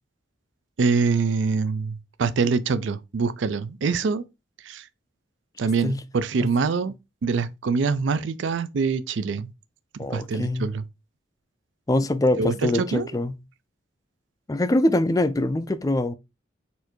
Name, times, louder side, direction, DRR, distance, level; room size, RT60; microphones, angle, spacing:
voice 1, 0.8-4.2 4.6-4.8 5.6-6.9 7.2-9.5 10.1-10.8 12.4-13.1, right 4 dB, 75° right, 0.4 m, -24 dB
voice 2, 10.0-10.7 11.9-13.4 14.5-16.1, left 1 dB, 20° left, 0.3 m, -23 dB
4.3 x 2.6 x 4.4 m
head